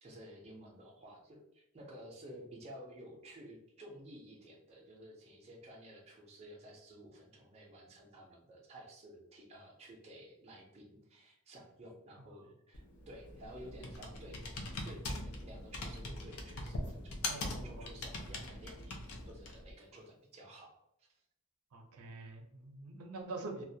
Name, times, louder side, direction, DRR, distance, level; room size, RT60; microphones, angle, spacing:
voice 1, 0.0-14.4 14.8-21.2, equal, 30° right, -1 dB, 0.4 m, -53 dB
Computer keyboard, 12.7-19.7, left 2 dB, 80° left, 0.5 m, -42 dB
voice 2, 17.3-17.9 21.7-23.6, right 3 dB, 80° right, 2 dB, 0.5 m, -45 dB
2.3 x 2.1 x 2.6 m, 0.82 s
head